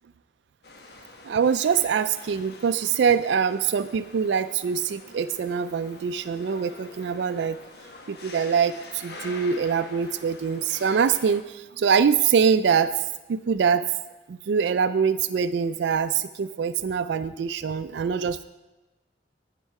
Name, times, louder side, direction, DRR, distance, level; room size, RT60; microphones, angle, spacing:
sound 1, 0.6-11.4, left 2 dB, 60° left, 1.2 m, -45 dB
voice 1, 1.2-7.6 8.1-13.8 14.3-18.5, right 6 dB, 65° right, 12 dB, 0.3 m, -24 dB
12.0 x 9.1 x 4.7 m, 1.1 s
head